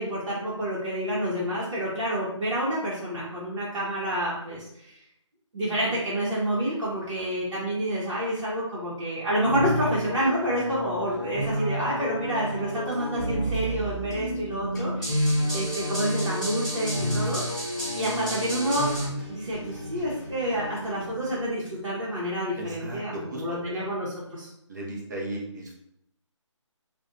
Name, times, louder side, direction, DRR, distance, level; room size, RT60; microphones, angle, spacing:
voice 1, 0.0-5.0 5.5-17.4 17.9-18.9 19.3-24.5, right 1 dB, 70° right, -9 dB, 0.9 m, -28 dB
sound 1, 9.4-19.1, equal, ahead, 0.9 m, -30 dB
sound 2, 12.6-22.2, left 2 dB, 35° left, 0.5 m, -42 dB
voice 2, 22.6-23.9 24.7-25.7, right 1 dB, 35° right, -1 dB, 0.5 m, -36 dB
2.6 x 2.1 x 2.4 m, 0.78 s
figure-of-eight pair, 160°, 16 cm